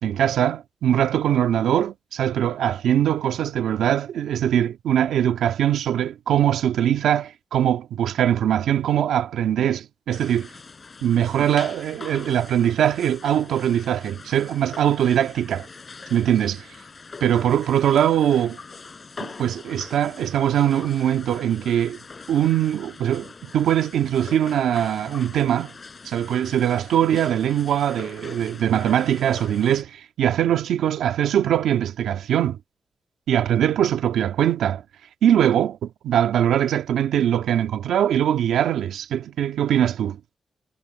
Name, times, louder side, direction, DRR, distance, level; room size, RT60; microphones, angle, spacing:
voice 1, 0.0-10.5 11.0-15.7 16.1-16.6 17.2-18.6 19.2-22.0 22.3-23.3 23.5-25.7 26.0-32.6 33.3-34.8 35.2-40.2, right 10 dB, 90° right, 1.9 m, -22 dB
sound 1, 10.1-29.8, left 4 dB, 45° left, 5.5 m, -42 dB
cardioid pair, 60°, 0 cm